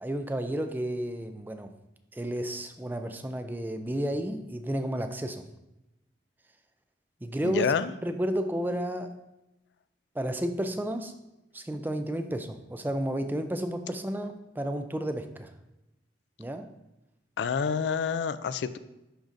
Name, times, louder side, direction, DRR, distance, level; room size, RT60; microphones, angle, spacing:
voice 1, 0.0-1.7 2.1-5.4 7.2-7.7 8.0-9.2 10.1-11.1 11.5-15.5 16.4-16.7, right 1 dB, 10° right, 8 dB, 0.3 m, -32 dB
voice 2, 7.4-7.9 17.4-18.8, left 6 dB, 70° left, 14 dB, 0.3 m, -28 dB
11.0 x 3.8 x 2.6 m, 0.94 s
head